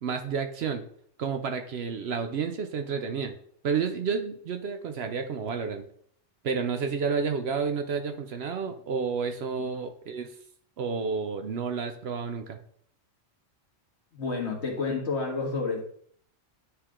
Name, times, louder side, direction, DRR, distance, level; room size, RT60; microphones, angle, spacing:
voice 1, 0.0-0.8 1.2-3.3 3.6-5.8 6.4-10.3 10.8-12.6, right 5 dB, 65° right, 7 dB, 0.8 m, -30 dB
voice 2, 14.1-15.8, left 4 dB, 60° left, 0 dB, 1.6 m, -30 dB
9.6 x 3.2 x 3.6 m, 0.62 s
omnidirectional pair, 1.3 m